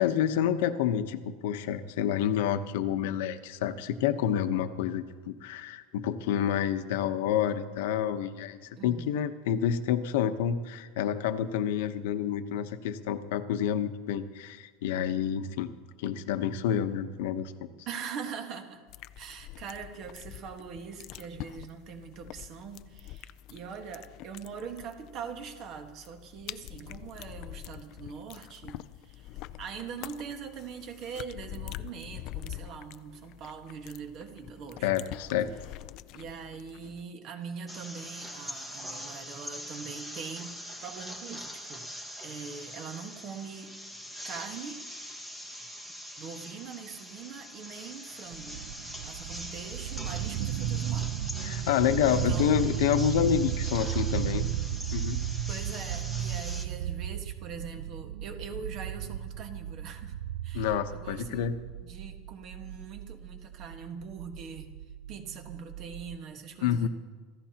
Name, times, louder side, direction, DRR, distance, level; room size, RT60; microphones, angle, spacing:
voice 1, 0.0-15.7 16.0-17.5 34.8-35.5 51.4-54.4 54.9-55.2 60.5-61.5 66.6-66.9, left 9 dB, 75° left, 9 dB, 0.9 m, -28 dB
voice 2, 8.8-9.3 17.9-18.8 19.2-28.8 29.0-34.9 36.1-41.9 42.2-43.7 44.2-44.8 46.2-51.1 52.1-52.7 55.5-60.2 60.4-61.5 61.8-64.7 65.1-66.9, right 6 dB, 40° right, 6 dB, 1.5 m, -42 dB
sound 1, 18.9-37.0, left 15 dB, 40° left, 0.4 m, -45 dB
sound 2, 37.7-56.6, equal, 10° right, 1.4 m, -42 dB
sound 3, 48.3-66.2, right 11 dB, 55° right, 0.5 m, -35 dB
27.0 x 15.0 x 2.9 m, 1.4 s
supercardioid pair, 170°, 0 cm